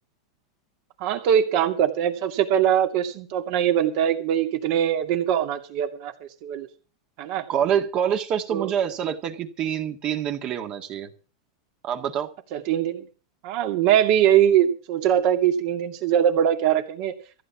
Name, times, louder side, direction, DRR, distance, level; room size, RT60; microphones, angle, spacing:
voice 1, 1.0-6.7 7.2-7.4 8.5-8.7 12.5-13.0 13.4-17.1, right 10 dB, 55° right, 5 dB, 2.5 m, -22 dB
voice 2, 7.5-11.1 11.8-12.3, right 9 dB, 35° right, 6 dB, 1.8 m, -26 dB
14.5 x 8.7 x 7.2 m, 0.37 s
supercardioid pair, 135°, 3 cm